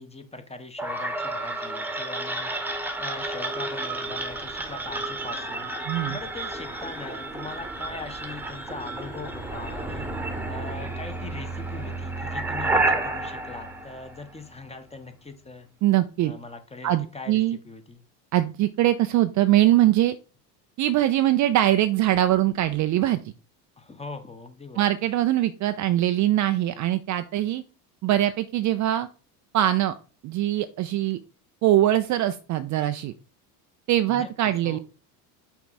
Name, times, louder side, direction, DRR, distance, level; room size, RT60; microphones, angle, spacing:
voice 1, 0.0-15.7 16.2-18.0 23.8-24.8 34.1-34.8, left 3 dB, 15° left, 7 dB, 1.1 m, -41 dB
sound 1, 0.8-14.7, right 2 dB, 5° right, 1.2 m, -31 dB
voice 2, 5.9-6.2 15.8-16.3 16.8-17.6 18.3-20.2 20.8-23.2 24.8-27.6 28.0-29.1 29.5-29.9 30.2-31.2 31.6-33.1 33.9-34.8, right 13 dB, 40° right, 10 dB, 0.5 m, -22 dB
5.8 x 4.6 x 4.1 m, 0.36 s
hypercardioid pair, 85°, 49 cm